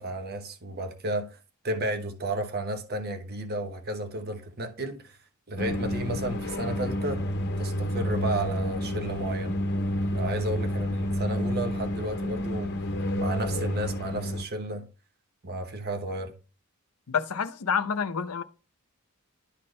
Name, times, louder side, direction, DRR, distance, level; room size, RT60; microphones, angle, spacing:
voice 1, 0.0-1.4 1.6-5.2 5.5-7.2 7.6-9.6 10.1-12.7 13.1-14.9 15.4-16.3, right 1 dB, 45° right, 1.1 m, -32 dB
sound 1, 5.6-14.4, left 1 dB, 50° left, 0.8 m, -29 dB
voice 2, 17.1-18.4, left 6 dB, 80° left, 0.6 m, -28 dB
11.5 x 4.3 x 3.2 m
head